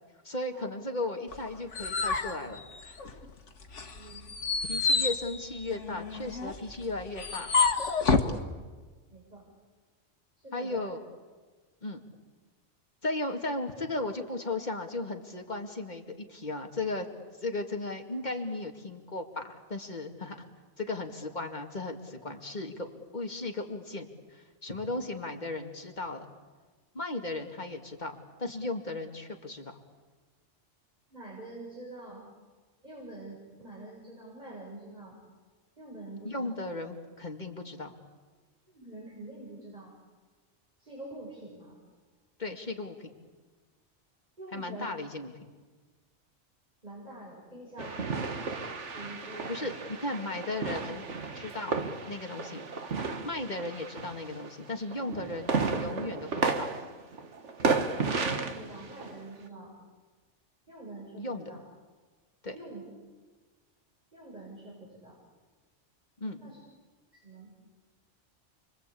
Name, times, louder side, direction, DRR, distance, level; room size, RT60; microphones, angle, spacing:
voice 1, 0.2-3.0 4.7-7.5 10.5-11.0 11.8-12.1 13.0-17.1 17.4-20.4 20.8-22.9 23.1-26.3 26.9-28.1 28.4-29.7 36.2-37.9 42.4-43.1 44.5-45.5 49.5-49.7 50.0-51.1 51.3-52.6 53.2-56.7 61.2-61.5 62.4-62.6 66.2-66.4, left 2 dB, 40° left, 3 dB, 2.4 m, -36 dB
sound 1, 1.3-3.3 3.7-8.4, left 4 dB, 75° left, 1.9 m, -29 dB
voice 2, 3.9-4.2 9.1-9.4 10.4-10.9 31.1-32.3 32.8-35.2 35.8-36.6 38.7-39.9 40.8-41.8 44.4-44.9 46.8-48.1 48.9-49.5 57.9-59.7 60.7-61.6 62.5-62.8 64.1-65.2 66.4-66.6 67.1-67.5, right 2 dB, 35° right, -4 dB, 7.1 m, -45 dB
sound 2, 47.8-54.6 54.9-59.3, right 4 dB, 75° right, 1.8 m, -33 dB
29.5 x 23.0 x 8.6 m, 1.4 s
omnidirectional pair, 1.2 m